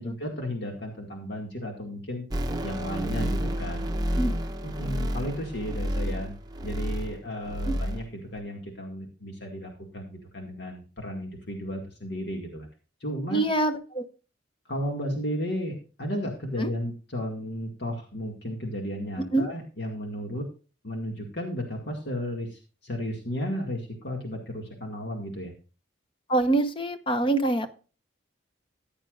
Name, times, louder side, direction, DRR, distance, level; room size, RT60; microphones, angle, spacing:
voice 1, 0.0-2.3 2.6-3.9 4.6-6.4 6.6-12.7 13.0-13.5 14.7-20.4 20.8-25.5, equal, 60° left, 1 dB, 2.1 m, -34 dB
sound 1, 2.3-7.2 7.4-8.1 8.4-8.5, equal, 20° right, 0.8 m, -30 dB
voice 2, 13.3-14.1 16.6-16.7 19.3-19.5 26.3-27.7, right 2 dB, 25° left, 9 dB, 1.0 m, -25 dB
14.5 x 9.9 x 2.5 m, 0.34 s
head